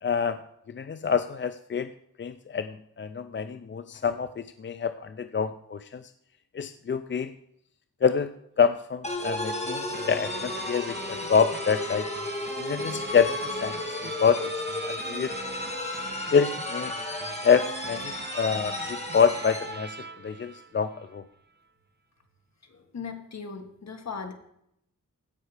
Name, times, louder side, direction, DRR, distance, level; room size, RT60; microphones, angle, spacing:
voice 1, 0.0-0.4 0.7-1.9 2.2-6.0 6.5-7.3 8.0-12.1 12.6-13.9 14.2-15.3 16.3-16.9 17.4-20.0 20.2-21.2, left 6 dB, 35° left, 11 dB, 0.4 m, -26 dB
sound 1, 9.0-19.8, left 2 dB, 20° left, 1.5 m, -34 dB
sound 2, 9.9-21.2, right 4 dB, 30° right, 0.6 m, -41 dB
voice 2, 22.6-24.3, left 5 dB, 50° left, 5 dB, 1.5 m, -38 dB
16.0 x 5.7 x 4.8 m, 0.76 s
wide cardioid pair, 140°, 33 cm